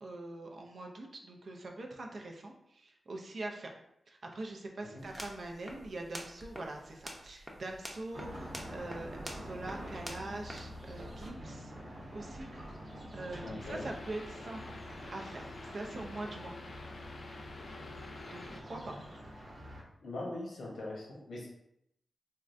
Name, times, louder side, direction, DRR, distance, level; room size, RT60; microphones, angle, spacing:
voice 1, 0.0-3.7 4.1-11.7 12.1-12.5 13.1-14.6 15.1-16.5 18.3-19.0, right 2 dB, 65° right, 1 dB, 0.5 m, -43 dB
sound 1, 5.0-11.3, equal, 5° right, 0.6 m, -48 dB
sound 2, 8.1-19.8, equal, 85° right, 1.1 m, -46 dB
voice 2, 13.4-13.9 20.0-21.5, left 2 dB, 85° left, -3 dB, 0.9 m, -41 dB
sound 3, 13.6-18.6, left 3 dB, 60° left, 0.3 m, -48 dB
3.6 x 2.2 x 2.5 m, 0.78 s
cardioid pair, 65°, 0 cm